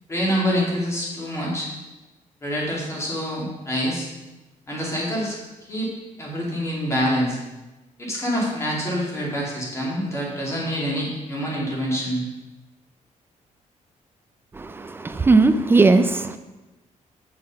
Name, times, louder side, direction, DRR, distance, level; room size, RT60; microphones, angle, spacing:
voice 1, 0.1-1.7 2.4-4.1 4.7-5.4 5.7-5.9 6.2-7.4 8.0-12.2, equal, 20° left, -3 dB, 2.5 m, -26 dB
voice 2, 15.0-16.4, right 3 dB, 15° right, 10 dB, 0.4 m, -16 dB
7.6 x 6.0 x 5.4 m, 1.1 s
cardioid pair, 160°, 13 cm